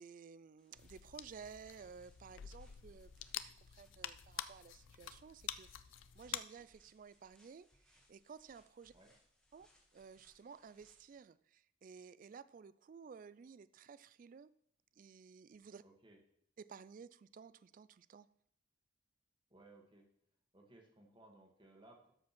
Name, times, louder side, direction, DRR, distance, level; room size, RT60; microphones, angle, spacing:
voice 1, 0.0-3.1 3.4-8.9 9.5-14.5 15.0-15.8 16.6-18.3, right 6 dB, 45° right, 0.3 m, -55 dB
sound 1, 0.6-11.2, equal, 5° left, 1.7 m, -72 dB
sound 2, 0.8-6.4, left 11 dB, 80° left, 0.5 m, -48 dB
voice 2, 15.8-16.2 19.5-20.1 20.5-22.1, right 2 dB, 25° right, 1.8 m, -62 dB
12.5 x 5.2 x 6.0 m
head